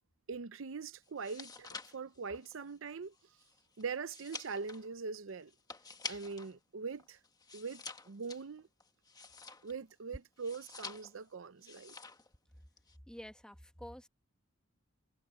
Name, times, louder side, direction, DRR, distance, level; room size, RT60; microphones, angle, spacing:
voice 1, 0.3-3.1 3.8-5.5 6.1-7.2 7.5-8.7 9.6-11.9, right 5 dB, 70° right, 0.6 m, -42 dB
sound 1, 1.1-6.5 6.9-9.9 10.4-11.3 11.6-12.3 12.6-13.0, left 4 dB, 20° left, 1.4 m, -48 dB
voice 2, 13.0-14.1, equal, 5° left, 1.1 m, -49 dB
head